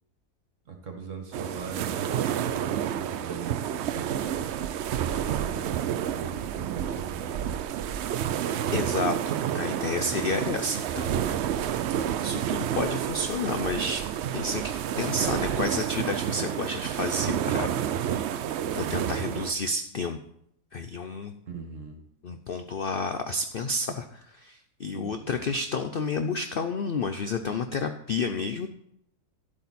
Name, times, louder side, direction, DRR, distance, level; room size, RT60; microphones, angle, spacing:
voice 1, 0.7-4.5 4.9-7.7 21.4-22.0 24.9-25.4, right 4 dB, 50° right, 4 dB, 1.8 m, -41 dB
sound 1, 1.3-19.5, right 10 dB, 80° right, 0.6 m, -29 dB
voice 2, 8.7-11.4 12.2-14.1 14.3-17.7 18.1-18.4 18.7-20.2 20.7-21.3 22.2-28.7, left 3 dB, 70° left, 8 dB, 0.5 m, -31 dB
11.0 x 8.1 x 4.2 m, 0.72 s
omnidirectional pair, 1.7 m